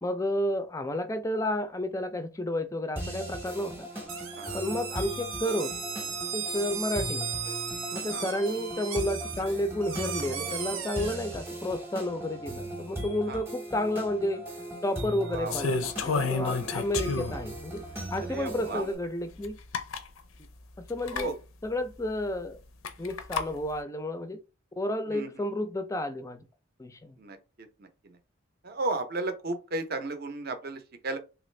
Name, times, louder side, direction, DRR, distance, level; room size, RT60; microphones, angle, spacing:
voice 1, 0.0-3.9 4.5-5.7 6.3-7.3 7.9-14.4 14.8-17.8 18.1-19.6 20.8-21.3 21.6-22.6 23.0-24.4 24.8-26.4 26.8-27.2, left 1 dB, 15° left, 0.4 m, -31 dB
sound 1, 3.0-19.0, right 1 dB, 10° right, 0.8 m, -38 dB
sound 2, 4.1-11.2, right 6 dB, 85° right, 0.8 m, -36 dB
voice 2, 15.3-15.9 18.3-18.8 21.1-21.3 25.1-25.3 27.2-28.2 28.6-31.2, right 2 dB, 50° right, 0.6 m, -35 dB
sound 3, 15.5-17.5 18.1-18.2 19.4-19.5 19.7-20.1 21.0-21.3 22.8-23.5, left 5 dB, 80° left, 0.5 m, -30 dB
3.2 x 2.5 x 3.1 m
head